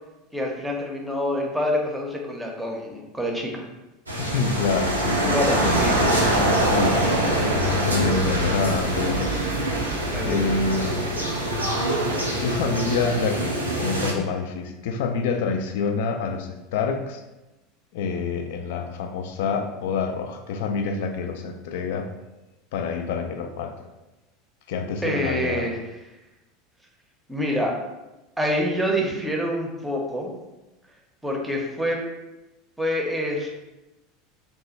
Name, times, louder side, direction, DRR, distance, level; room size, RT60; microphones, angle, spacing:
voice 1, 0.3-3.7 5.2-6.3 10.1-10.4 25.0-25.8 27.3-27.8 28.4-30.3 31.2-32.0 32.8-33.6, equal, 5° right, 0 dB, 0.7 m, -26 dB
sound 1, 4.1-14.1, right 1 dB, 85° right, 0.5 m, -24 dB
voice 2, 4.2-5.8 6.7-7.0 7.8-9.3 10.2-11.0 12.4-17.2 17.9-22.1 22.7-23.8 24.7-25.7, left 5 dB, 60° left, 5 dB, 0.3 m, -27 dB
3.0 x 2.2 x 4.1 m, 1.0 s
figure-of-eight pair, 75°, 0 cm